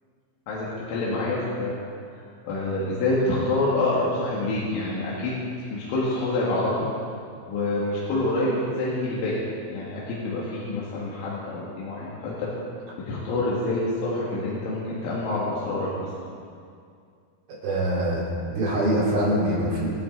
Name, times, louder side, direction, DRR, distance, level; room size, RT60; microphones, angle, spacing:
voice 1, 0.5-1.7 2.1-5.4 5.7-6.9 7.5-12.5 13.1-16.1, left 2 dB, 85° left, -7 dB, 4.4 m, -27 dB
voice 2, 17.5-18.2 18.5-19.9, right 1 dB, 85° right, -8 dB, 6.3 m, -24 dB
26.5 x 9.6 x 3.9 m, 2.3 s
omnidirectional pair, 5.4 m